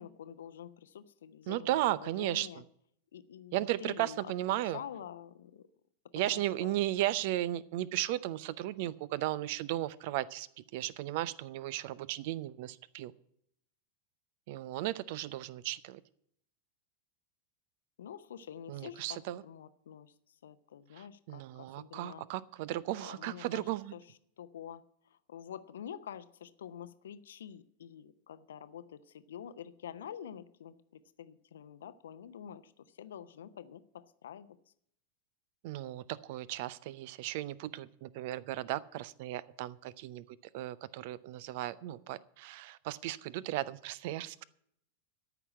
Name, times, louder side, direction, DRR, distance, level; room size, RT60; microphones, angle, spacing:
voice 1, 0.0-2.6 3.1-5.6 6.1-6.8 18.0-20.1 20.4-22.2 23.0-24.0 24.4-24.8 25.3-30.7 31.2-34.6, left 9 dB, 60° left, 13 dB, 0.7 m, -47 dB
voice 2, 1.5-2.6 3.5-4.8 6.1-13.1 14.5-16.0 18.7-19.4 21.0-23.9 35.6-40.2 40.5-44.4, right 15 dB, 50° right, 20 dB, 0.6 m, -35 dB
13.5 x 6.0 x 8.5 m, 0.71 s
figure-of-eight pair, 90°, 0 cm